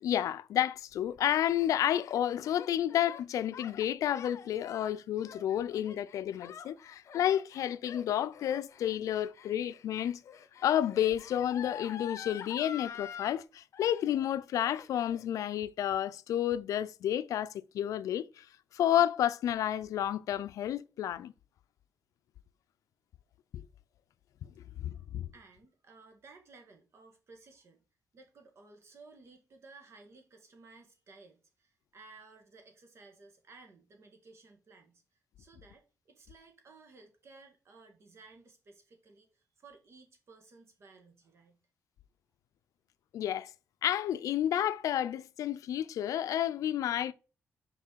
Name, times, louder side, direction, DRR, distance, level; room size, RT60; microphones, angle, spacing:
voice 1, 0.0-10.2 10.6-18.4 18.7-21.3 24.8-25.3 43.1-43.5 43.8-47.1, left 11 dB, 85° left, 0.4 m, -31 dB
Gasp, 0.9-13.4 13.7-14.3 14.6-15.2, left 8 dB, 65° left, 0.8 m, -47 dB
voice 2, 24.6-25.1 25.3-27.8 28.1-35.0 35.4-41.6, right 3 dB, 55° right, 1.7 m, -57 dB
6.0 x 4.9 x 4.5 m
cardioid pair, 115°, 6 cm